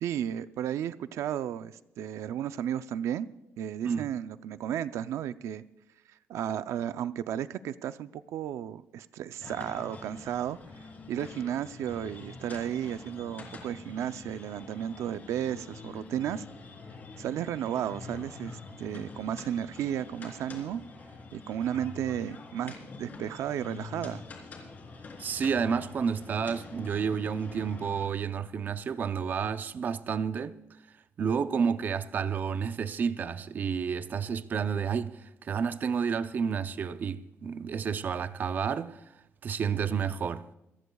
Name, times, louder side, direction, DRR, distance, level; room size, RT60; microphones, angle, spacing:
voice 1, 0.0-3.3 3.6-5.6 6.3-10.6 11.1-16.4 17.2-20.8 21.3-24.2, right 10 dB, 85° right, 0.5 m, -33 dB
sound 1, 9.4-28.1, left 4 dB, 35° left, 3.3 m, -46 dB
voice 2, 25.2-30.6 31.2-39.0 39.4-40.5, right 6 dB, 40° right, 0.6 m, -30 dB
25.5 x 15.0 x 2.3 m
cardioid pair, 170°, 5 cm